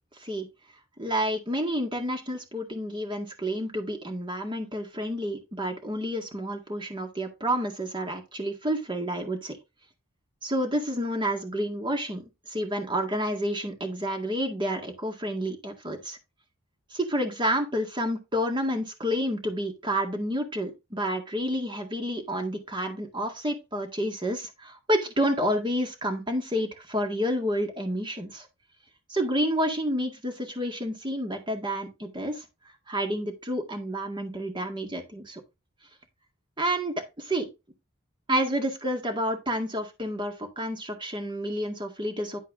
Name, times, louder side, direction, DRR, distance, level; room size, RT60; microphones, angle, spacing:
voice 1, 1.0-9.6 10.4-16.2 16.9-28.5 29.1-32.4 32.9-35.4 36.6-37.5 38.3-42.4, equal, 25° right, 3 dB, 1.9 m, -29 dB
11.0 x 4.6 x 3.6 m, 0.25 s
head